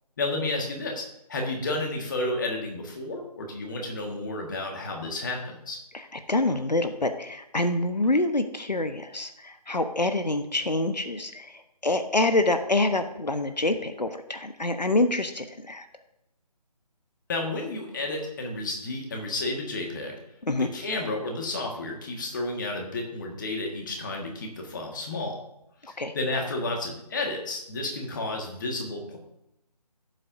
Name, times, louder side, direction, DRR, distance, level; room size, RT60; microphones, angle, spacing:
voice 1, 0.2-5.8 17.3-20.2 20.7-25.4 25.8-29.2, left 2 dB, 30° left, 1 dB, 1.7 m, -31 dB
voice 2, 5.9-15.9 20.4-20.7 25.8-26.1, left 2 dB, 80° left, 8 dB, 1.0 m, -26 dB
17.0 x 7.7 x 2.7 m, 0.83 s
figure-of-eight pair, 155°, 21 cm